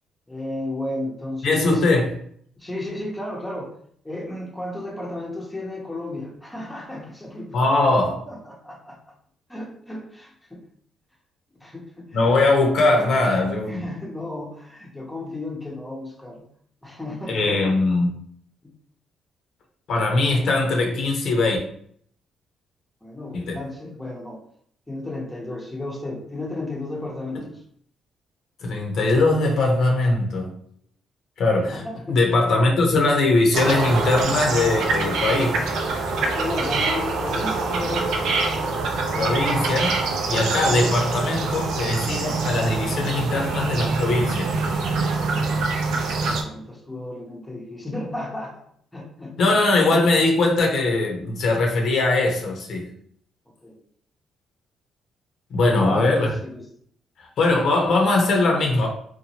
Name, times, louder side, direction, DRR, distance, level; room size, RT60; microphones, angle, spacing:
voice 1, 0.3-1.8 2.6-3.7 4.0-7.6 8.3-9.1 9.5-10.6 11.6-12.2 13.7-16.5 16.8-17.6 18.6-18.7 23.0-24.4 24.9-27.6 31.7-32.2 36.2-38.4 45.5-48.6 48.9-49.6 53.6-53.8 55.8-56.7, left 1 dB, 10° left, 0.7 m, -33 dB
voice 2, 1.4-2.1 7.5-8.2 12.1-13.9 17.3-18.2 19.9-21.6 23.3-23.6 28.6-30.5 31.4-31.8 32.1-35.7 39.1-40.0 40.3-44.5 49.4-52.9 55.5-56.3 57.2-58.9, left 2 dB, 70° left, 0.7 m, -21 dB
sound 1, 33.5-46.4, right 3 dB, 80° right, 0.5 m, -25 dB
2.8 x 2.2 x 2.8 m
cardioid pair, 90°, 0 cm